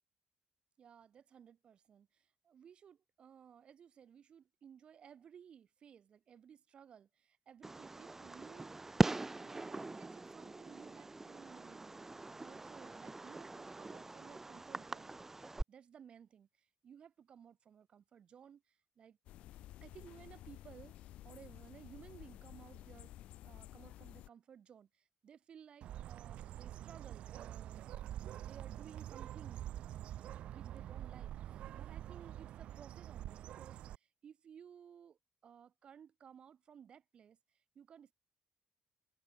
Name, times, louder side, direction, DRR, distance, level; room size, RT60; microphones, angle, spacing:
voice 1, 0.8-8.8 9.0-15.2 15.7-19.2 19.8-23.1 23.4-38.1, right 8 dB, 55° right, 5.7 m, -58 dB
Fireworks, 7.6-15.6, right 2 dB, 20° right, 0.4 m, -40 dB
sound 1, 19.3-24.3, left 14 dB, 85° left, 4.9 m, -53 dB
Bird, 25.8-34.0, right 12 dB, 75° right, 0.8 m, -46 dB
cardioid pair, 85°, 2 cm